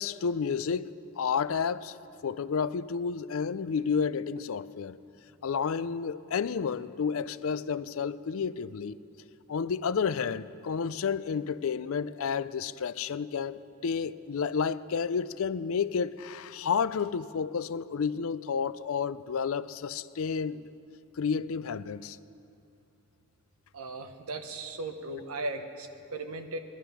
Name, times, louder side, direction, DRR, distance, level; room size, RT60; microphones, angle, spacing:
voice 1, 0.0-2.0 2.2-5.0 5.4-9.0 9.5-20.7 21.2-22.2, left 6 dB, 70° left, 0.4 m, -31 dB
voice 2, 23.7-26.6, right 2 dB, 80° right, 1.1 m, -37 dB
20.5 x 11.5 x 5.8 m
head